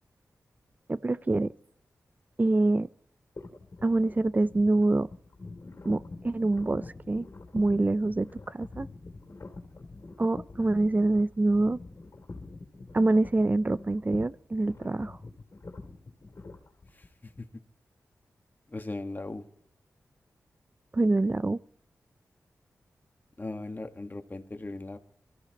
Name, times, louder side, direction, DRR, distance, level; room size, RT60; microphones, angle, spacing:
voice 1, 0.9-1.5 2.4-2.9 3.8-5.1 5.8-7.3 7.5-8.9 10.2-11.8 12.9-15.2 20.9-21.6, right 2 dB, 30° right, 0.5 m, -25 dB
sound 1, 3.4-17.4, left 3 dB, 55° left, 3.0 m, -45 dB
voice 2, 18.7-19.4 23.4-25.0, left 2 dB, 30° left, 1.6 m, -38 dB
23.0 x 14.5 x 3.1 m
cardioid pair, 60°, 6 cm